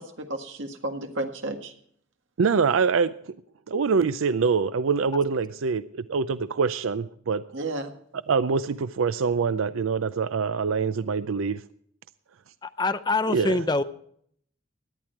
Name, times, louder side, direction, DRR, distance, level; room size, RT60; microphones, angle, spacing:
voice 1, 0.0-1.7 7.5-7.9, right 2 dB, 65° right, 4 dB, 1.7 m, -32 dB
voice 2, 2.4-3.3 3.7-7.4 8.3-11.6 13.3-13.6, right 5 dB, 85° right, 13 dB, 0.5 m, -25 dB
voice 3, 12.6-13.8, left 3 dB, 20° left, 12 dB, 0.5 m, -25 dB
17.5 x 11.0 x 4.5 m, 0.65 s
head